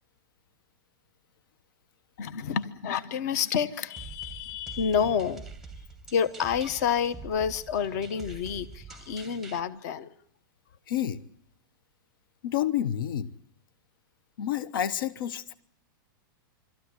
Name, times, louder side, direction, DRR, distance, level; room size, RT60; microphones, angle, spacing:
voice 1, 2.2-5.4 6.1-10.1, left 7 dB, 50° left, 14 dB, 1.1 m, -29 dB
sound 1, 4.0-9.6, right 4 dB, ahead, 0.8 m, -45 dB
voice 2, 10.9-11.2 12.4-13.3 14.4-15.6, left 10 dB, 70° left, 15 dB, 1.0 m, -29 dB
25.0 x 13.5 x 9.6 m, 0.69 s
supercardioid pair, 165°, 12 cm